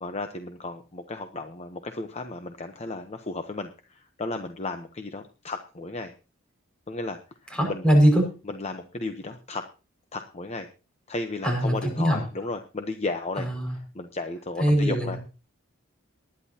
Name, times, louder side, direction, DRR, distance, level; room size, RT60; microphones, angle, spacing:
voice 1, 0.0-6.1 6.9-7.9 8.5-9.7 10.1-10.7 11.1-13.5 13.9-15.2, left 2 dB, 30° left, 7 dB, 0.9 m, -34 dB
voice 2, 7.5-8.2 11.4-12.2 13.4-13.8 14.6-15.2, equal, 5° left, 1 dB, 5.6 m, -21 dB
19.5 x 10.5 x 2.9 m, 0.32 s
head